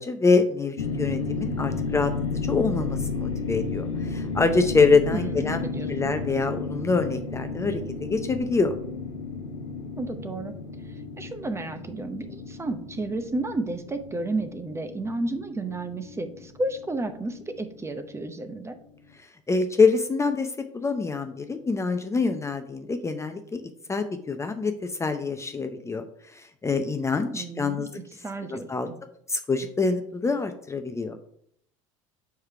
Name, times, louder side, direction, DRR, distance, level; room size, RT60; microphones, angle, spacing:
voice 1, 0.0-2.1 2.4-5.6 5.9-8.8 19.2-23.6 23.9-26.0 26.3-27.9 28.5-28.9 29.3-31.2, left 4 dB, 15° left, 7 dB, 0.6 m, -25 dB
sound 1, 0.8-17.9, left 4 dB, 85° left, 0.9 m, -33 dB
voice 2, 5.1-6.1 10.0-10.5 11.2-18.8 27.3-27.9 28.2-28.9, right 2 dB, 15° right, 9 dB, 0.8 m, -32 dB
4.8 x 4.7 x 5.6 m, 0.66 s
hypercardioid pair, 70°, 16 cm